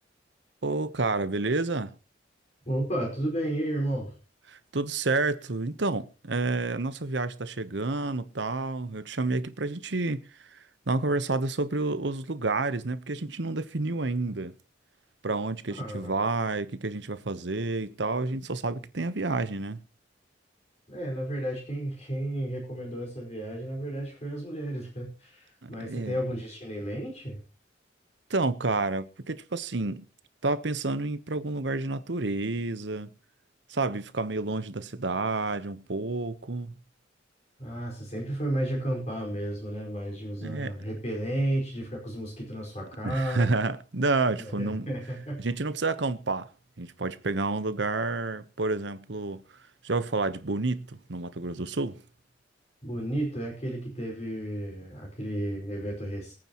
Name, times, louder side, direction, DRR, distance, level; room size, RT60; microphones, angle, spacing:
voice 1, 0.6-1.9 4.5-10.2 10.5-14.5 15.2-19.8 25.6-26.1 28.3-30.1 30.4-33.1 33.7-36.7 40.4-40.7 43.0-44.9 45.4-46.5 46.8-49.4 49.8-52.0, right 3 dB, 70° right, 1.0 m, -29 dB
voice 2, 2.6-4.1 15.7-16.1 20.9-27.4 37.6-43.5 44.4-45.4 52.8-56.3, right 1 dB, 35° left, 5.1 m, -32 dB
23.5 x 9.0 x 3.0 m
head